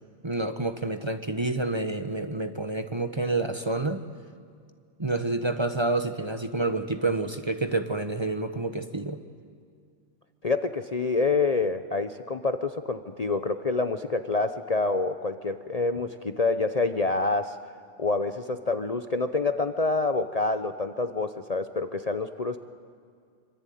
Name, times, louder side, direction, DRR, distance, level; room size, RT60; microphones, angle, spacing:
voice 1, 0.2-4.0 5.0-9.2, right 2 dB, 25° right, 8 dB, 1.1 m, -28 dB
voice 2, 10.4-17.6 18.0-22.6, left 3 dB, 35° left, 9 dB, 0.8 m, -27 dB
26.0 x 25.0 x 9.3 m, 2.2 s
omnidirectional pair, 1.3 m